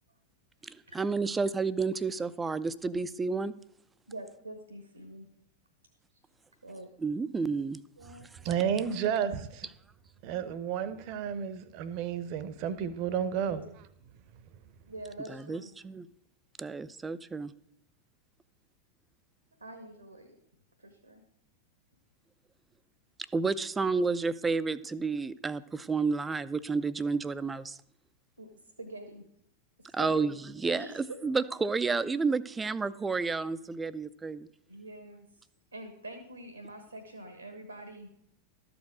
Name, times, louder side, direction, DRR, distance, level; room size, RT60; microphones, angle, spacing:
voice 1, 0.6-3.5 7.0-7.8 15.3-16.1 16.6-17.5 23.3-27.8 29.9-34.5, right 4 dB, 15° right, 0.4 m, -31 dB
voice 2, 4.1-5.3 6.6-6.9 8.0-8.3 13.5-13.7 14.9-15.7 19.6-20.4 20.8-21.2 28.4-28.5 28.8-29.3 29.8-30.3 30.6-31.2 34.7-35.3 35.7-38.1, right 1 dB, 85° right, 1.2 m, -45 dB
voice 3, 8.4-9.7 10.2-13.6, right 8 dB, 45° right, 0.8 m, -31 dB
12.5 x 5.2 x 6.3 m
figure-of-eight pair, 90°, 0 cm